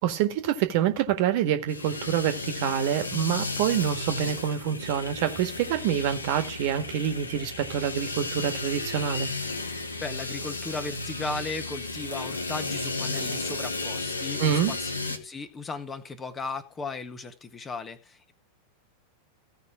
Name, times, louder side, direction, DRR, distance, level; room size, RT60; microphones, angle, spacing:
voice 1, 0.0-9.3 14.4-14.7, right 10 dB, 50° right, 1.7 m, -26 dB
sound 1, 1.7-15.2, left 3 dB, 80° left, 1.7 m, -33 dB
voice 2, 10.0-18.3, left 3 dB, 20° left, 1.5 m, -36 dB
16.5 x 5.5 x 4.9 m
figure-of-eight pair, 90°, 0 cm